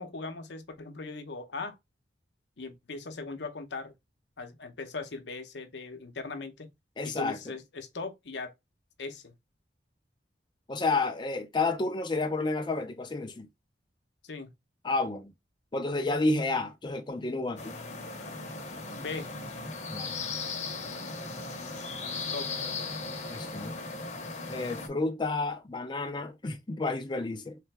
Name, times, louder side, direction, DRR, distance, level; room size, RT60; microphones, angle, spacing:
voice 1, 0.0-1.8 2.6-3.9 4.4-6.7 7.0-8.5 9.0-9.3 14.2-14.5 18.9-19.3 22.3-22.5, left 3 dB, 75° left, 0.7 m, -39 dB
voice 2, 7.0-7.4 10.7-13.5 14.8-15.3 15.7-17.7 19.9-20.1 23.3-23.7 24.5-27.6, left 3 dB, 25° left, 0.5 m, -30 dB
sound 1, 17.6-24.9, left 3 dB, 40° left, 0.9 m, -37 dB
3.8 x 3.3 x 3.2 m
head